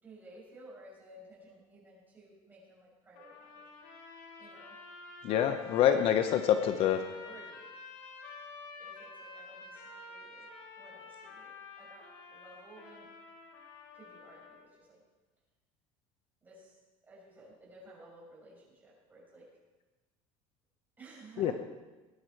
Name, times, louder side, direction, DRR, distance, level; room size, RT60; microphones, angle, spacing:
voice 1, 0.0-3.6 4.4-4.8 6.7-6.8 7.1-7.7 8.8-10.5 10.8-12.0 12.3-13.1 14.0-15.0 16.4-16.7 17.0-19.4 21.0-21.5, right 2 dB, 15° right, -5 dB, 5.8 m, -55 dB
sound 1, 3.1-14.7, left 3 dB, 70° left, 3.4 m, -50 dB
voice 2, 5.2-7.0 21.4-21.5, left 9 dB, 45° left, 8 dB, 0.9 m, -26 dB
21.0 x 10.5 x 4.6 m, 1.2 s
cardioid pair, 155°, 13 cm